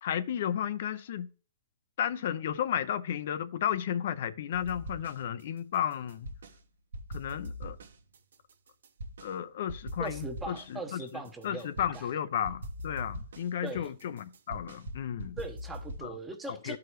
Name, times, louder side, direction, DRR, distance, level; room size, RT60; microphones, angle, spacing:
voice 1, 0.0-1.3 2.0-6.3 7.1-7.8 9.2-15.4 16.0-16.1 16.6-16.8, left 9 dB, 60° left, 0.5 m, -33 dB
sound 1, 4.5-5.4 5.7-6.6 6.9-9.3 9.7-12.1 12.4-16.1, equal, 85° right, 1.2 m, -42 dB
voice 2, 10.0-12.1 13.6-13.9 15.4-16.8, right 3 dB, 10° right, 1.0 m, -40 dB
12.5 x 4.8 x 3.0 m
hypercardioid pair, 155°, 0 cm